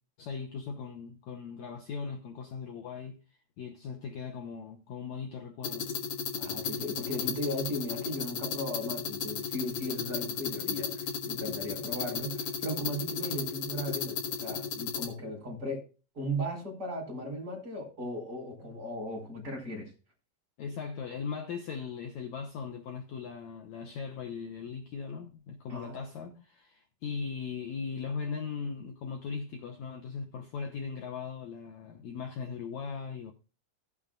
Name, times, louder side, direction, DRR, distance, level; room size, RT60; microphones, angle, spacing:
voice 1, 0.2-3.2 3.6-5.9 20.6-33.3, left 5 dB, 80° left, 1.6 m, -39 dB
sound 1, 5.6-15.1, left 7 dB, 65° left, 3.1 m, -35 dB
voice 2, 6.4-15.8 16.1-19.9 25.7-26.0, equal, 25° right, 4.8 m, -37 dB
16.0 x 8.7 x 2.4 m
omnidirectional pair, 4.5 m